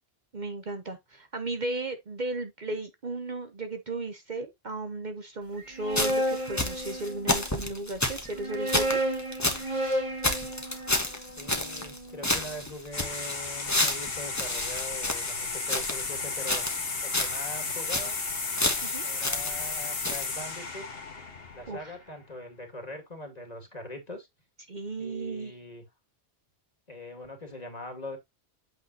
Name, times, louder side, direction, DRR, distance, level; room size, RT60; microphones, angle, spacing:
voice 1, 0.3-9.0 18.8-19.0 21.7-21.9 24.7-25.5, right 2 dB, 45° right, 1.0 m, -35 dB
sound 1, 5.6-7.5 8.3-12.4, right 1 dB, 30° right, 2.1 m, -32 dB
sound 2, 5.9-9.7 9.9-10.0 10.2-12.0 12.2-16.1 16.5-16.9 17.1-17.4 17.7-18.2 18.6-19.8 20.0-20.2, left 1 dB, 15° left, 1.4 m, -30 dB
voice 2, 11.4-16.6 17.0-18.2 19.0-20.9 21.5-24.3 25.0-25.8 26.9-28.2, left 1 dB, 35° left, 2.4 m, -42 dB
sound 3, 12.9-22.1, left 4 dB, 60° left, 1.6 m, -34 dB
8.6 x 6.5 x 2.8 m
omnidirectional pair, 1.1 m